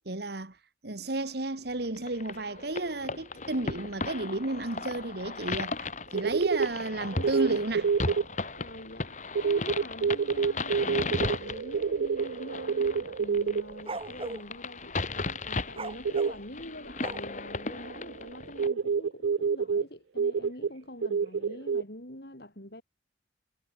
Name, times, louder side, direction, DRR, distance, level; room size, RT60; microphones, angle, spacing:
voice 1, 0.0-0.6 0.8-7.9, right 2 dB, 55° right, 1.6 m, -33 dB
sound 1, 1.9-18.7, left 3 dB, 40° left, 2.5 m, -36 dB
sound 2, 5.8-5.9 6.1-8.2 9.3-14.1 16.0-16.3 17.3-19.8 20.2-20.7 21.0-21.8, right 5 dB, 75° right, 0.4 m, -28 dB
voice 2, 8.6-15.0 15.4-22.8, left 1 dB, 55° left, 6.6 m, -45 dB
sound 3, 13.4-14.4 15.7-17.5, right 2 dB, 30° right, 1.1 m, -38 dB
head